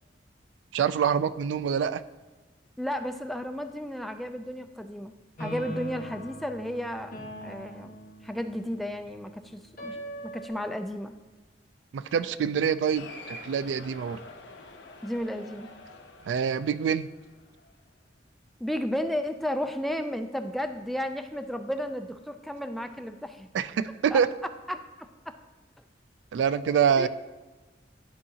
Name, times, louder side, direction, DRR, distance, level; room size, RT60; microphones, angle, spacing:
voice 1, 0.7-2.0 11.9-14.2 16.3-17.1 23.5-24.3 26.3-27.1, right 7 dB, 85° right, 15 dB, 0.3 m, -26 dB
voice 2, 2.8-5.1 5.4-7.1 7.4-8.0 8.2-11.1 15.0-15.7 18.6-23.5 24.1-24.2 24.7-25.4 27.0-27.1, equal, ahead, 7 dB, 0.3 m, -33 dB
sound 1, 5.4-10.5, equal, 50° left, 1.4 m, -41 dB
Cheering, 12.9-17.7, left 2 dB, 75° left, 0.8 m, -47 dB
11.5 x 4.7 x 2.8 m, 1.2 s
head